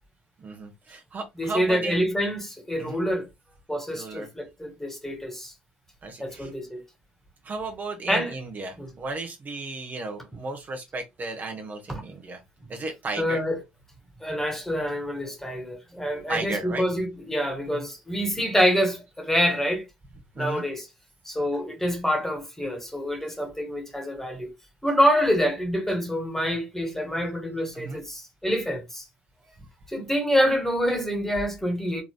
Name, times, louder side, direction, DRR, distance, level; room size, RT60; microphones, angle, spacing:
voice 1, 0.4-2.0 2.8-3.0 3.9-4.3 6.0-6.5 7.4-12.4 12.7-13.4 16.3-16.9 17.7-17.9 20.3-20.6 27.7-28.0, right 3 dB, 35° right, 1.2 m, -34 dB
voice 2, 1.4-3.3 3.7-5.5 6.2-6.8 8.1-8.3 8.8-8.9 11.9-12.0 13.2-13.6 14.2-19.8 20.4-20.9 21.3-24.5 24.8-29.0 29.9-32.0, equal, 5° left, 1.8 m, -26 dB
5.0 x 3.8 x 2.2 m
figure-of-eight pair, 55°, 5 cm